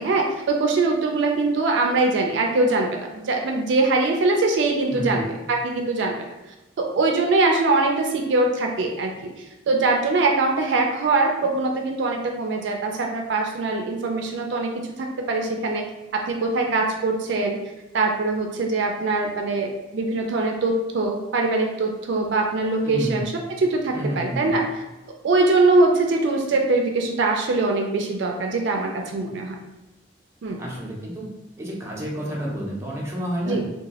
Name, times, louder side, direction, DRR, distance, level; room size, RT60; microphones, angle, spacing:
voice 1, 0.0-6.2 6.8-9.3 9.7-14.7 15.0-15.8 16.1-17.6 17.9-23.3 23.6-24.6 25.2-29.6 30.4-30.6 33.4-33.6, right 3 dB, 70° right, 2 dB, 0.4 m, -22 dB
voice 2, 22.8-23.2 23.9-24.5 30.6-31.3 31.6-33.6, equal, 15° right, -4 dB, 0.6 m, -29 dB
2.8 x 2.2 x 2.8 m, 1.0 s
head